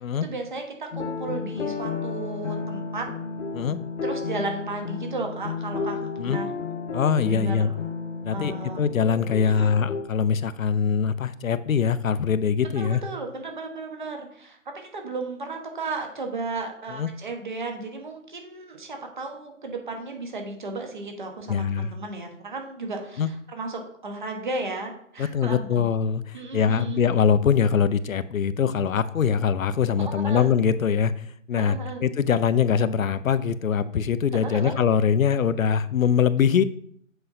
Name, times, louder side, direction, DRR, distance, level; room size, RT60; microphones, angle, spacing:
voice 1, 0.2-3.1 4.0-6.5 7.3-7.8 8.3-8.8 9.4-9.7 12.8-25.8 26.3-27.0 30.0-30.5 31.6-32.0 34.3-34.8, right 3 dB, 35° right, 3 dB, 1.2 m, -34 dB
sound 1, 0.9-10.0, left 4 dB, 60° left, 1.0 m, -32 dB
voice 2, 6.9-7.7 8.2-13.0 17.0-17.1 21.5-21.9 23.2-23.3 25.2-36.6, left 7 dB, 80° left, 15 dB, 0.6 m, -23 dB
7.9 x 5.5 x 2.7 m, 0.66 s
hypercardioid pair, 170°, 41 cm